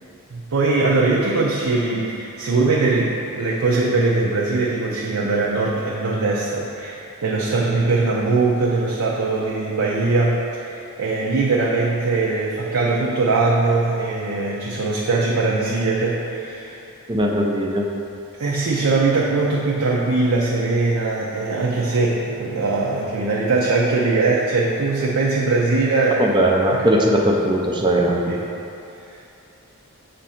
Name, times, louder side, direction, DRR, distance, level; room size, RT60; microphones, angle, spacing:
voice 1, 0.3-16.8 18.4-26.2 26.7-26.9 28.3-28.5, right 3 dB, 75° right, -4 dB, 0.5 m, -21 dB
voice 2, 17.1-17.9 26.2-28.3, right 1 dB, 20° right, 0 dB, 0.4 m, -19 dB
7.2 x 2.6 x 5.6 m, 2.8 s
head